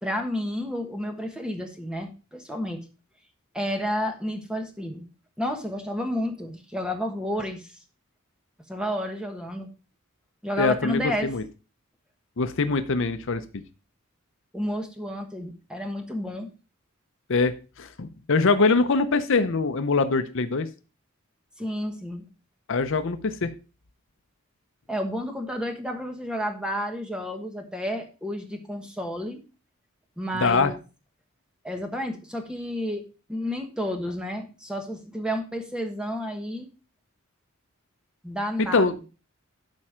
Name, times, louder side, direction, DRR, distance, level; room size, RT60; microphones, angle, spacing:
voice 1, 0.0-2.8 3.5-5.1 5.4-7.8 8.7-9.7 10.4-11.3 14.5-16.5 21.6-22.3 24.9-29.4 30.2-30.8 31.6-33.0 33.3-36.7 38.2-39.1, equal, 5° right, 4 dB, 1.3 m, -31 dB
voice 2, 10.6-11.4 12.4-13.6 17.3-17.5 17.8-20.7 22.7-23.5 30.3-30.7 38.6-38.9, left 4 dB, 60° left, 10 dB, 0.7 m, -23 dB
11.5 x 4.4 x 4.9 m, 0.33 s
head